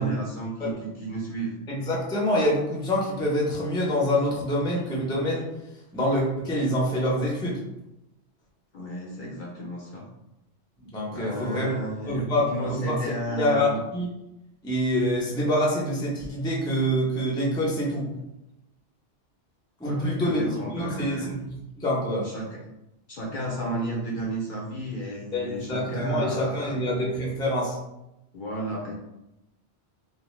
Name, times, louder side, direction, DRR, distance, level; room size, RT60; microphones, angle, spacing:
voice 1, 0.0-1.6 8.7-10.0 11.1-13.8 19.8-21.3 22.2-22.6 23.1-26.8 28.3-28.9, right 1 dB, 60° left, -3 dB, 0.6 m, -33 dB
voice 2, 1.7-5.5 5.9-7.6 10.8-11.7 12.1-13.0 13.3-14.1 14.6-18.1 19.8-20.4 20.7-21.4 21.8-22.3 25.3-27.8, equal, 5° left, -4 dB, 0.4 m, -26 dB
2.8 x 2.1 x 3.1 m, 0.89 s
omnidirectional pair, 1.2 m